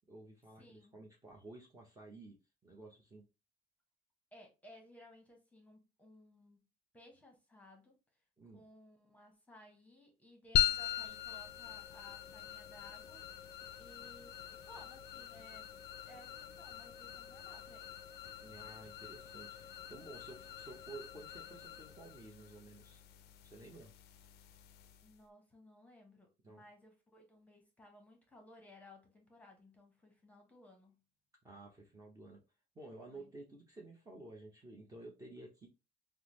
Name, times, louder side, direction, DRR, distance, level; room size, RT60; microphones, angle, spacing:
voice 1, 0.1-2.4 2.6-3.2 8.4-8.6 18.4-23.0 23.4-23.9 26.4-26.6 31.4-32.4 32.7-35.7, right 2 dB, 20° right, 0.8 m, -53 dB
voice 2, 0.6-1.0 4.3-6.6 6.9-7.9 8.5-13.3 13.8-15.7 16.0-17.9 25.0-31.0 33.1-33.3, left 1 dB, 10° left, 1.0 m, -59 dB
sound 1, 10.5-25.2, left 10 dB, 70° left, 0.4 m, -41 dB
3.6 x 2.0 x 3.0 m
cardioid pair, 110°, 17 cm